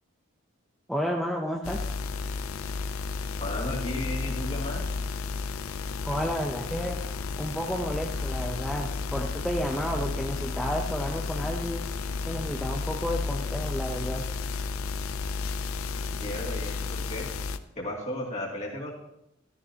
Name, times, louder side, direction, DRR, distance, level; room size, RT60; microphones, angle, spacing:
voice 1, 0.9-1.9 6.0-7.0 7.4-11.8 12.3-14.2, equal, ahead, -1 dB, 0.7 m, -31 dB
sound 1, 1.6-17.6, left 4 dB, 85° left, 0.5 m, -32 dB
voice 2, 3.4-4.8 16.2-17.3 17.8-18.9, left 1 dB, 30° left, -3 dB, 2.5 m, -34 dB
14.0 x 13.0 x 2.9 m, 0.80 s
head